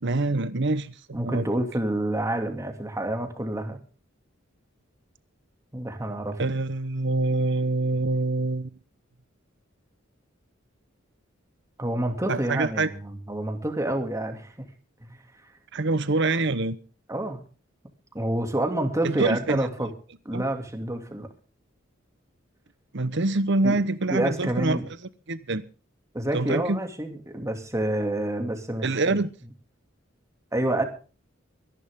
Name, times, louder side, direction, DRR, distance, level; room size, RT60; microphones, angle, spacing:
voice 1, 0.0-1.5 6.4-8.7 12.3-12.9 15.7-16.8 19.0-19.6 20.3-20.4 22.9-24.8 25.3-25.6 26.3-26.8 28.8-29.3, right 2 dB, 60° right, 1.0 m, -25 dB
voice 2, 1.1-3.8 5.7-6.4 11.8-14.5 15.0-15.2 17.1-17.4 18.1-19.9 20.2-21.3 23.6-23.8 24.1-24.9 26.1-29.1 30.5-30.8, right 1 dB, 15° right, 2.5 m, -28 dB
24.0 x 11.0 x 3.7 m
head